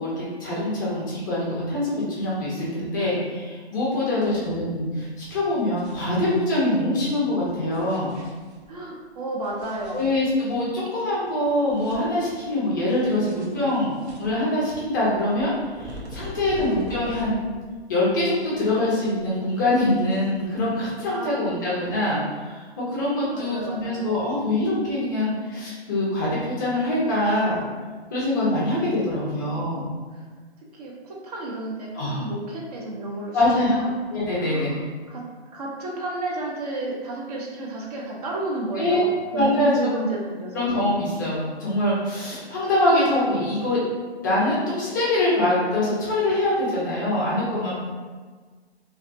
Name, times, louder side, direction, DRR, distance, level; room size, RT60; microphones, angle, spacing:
voice 1, 0.0-8.1 9.9-17.3 17.9-27.6 28.1-29.9 31.9-32.2 33.3-33.8 34.1-34.7 38.8-39.0 39.3-40.0 40.5-43.8 44.2-47.8, left 1 dB, 20° left, -7 dB, 0.4 m, -24 dB
voice 2, 4.1-4.5 8.7-10.1 16.6-16.9 21.1-21.6 23.3-24.1 29.4-29.7 30.1-30.3 30.7-34.0 34.4-35.3 35.5-40.7, right 2 dB, 35° right, -2 dB, 0.5 m, -32 dB
sound 1, 4.2-4.6 4.8-4.9 5.4-6.6 7.4-8.8 9.4-10.6 11.0-11.1 11.4-12.5 12.8-17.6 17.8-18.8 19.0-20.7, equal, 75° right, 0.8 m, -42 dB
2.3 x 2.3 x 2.5 m, 1.5 s
figure-of-eight pair, 135°, 33 cm